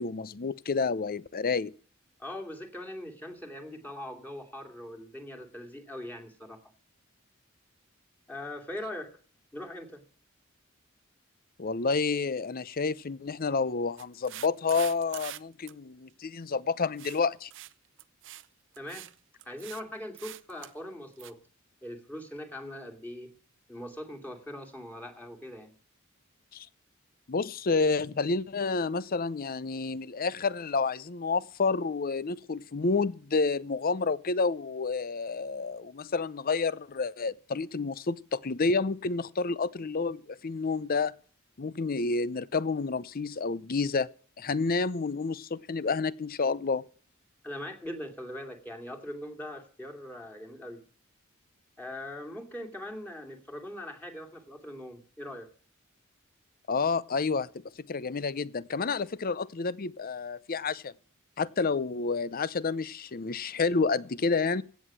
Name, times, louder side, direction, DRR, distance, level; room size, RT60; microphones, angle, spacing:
voice 1, 0.0-1.7 11.6-17.5 26.5-26.7 27.3-41.1 41.6-44.1 44.4-46.8 56.7-57.5 57.8-60.9 61.4-64.6, left 4 dB, 45° left, 0.6 m, -29 dB
voice 2, 2.2-6.6 8.3-9.1 9.5-10.0 18.8-19.1 19.4-21.4 21.8-23.3 23.7-25.7 47.4-50.8 51.8-55.5, left 1 dB, 10° left, 2.6 m, -41 dB
sound 1, 14.0-15.4 15.7-15.8 17.0-17.2 17.5-17.7 18.0-18.5 18.7-19.1 19.4-19.8 20.1-20.7 21.2-21.3, right 13 dB, 65° right, 0.7 m, -44 dB
16.5 x 7.8 x 7.6 m
head